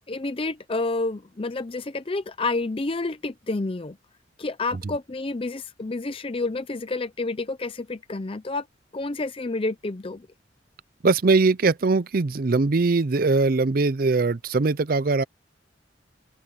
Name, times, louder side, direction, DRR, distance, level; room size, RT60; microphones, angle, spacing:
voice 1, 0.1-4.0 4.4-8.7 8.9-10.3, left 3 dB, 30° left, 0.6 m, -29 dB
voice 2, 11.0-15.2, right 3 dB, 50° right, 0.5 m, -21 dB
open air
head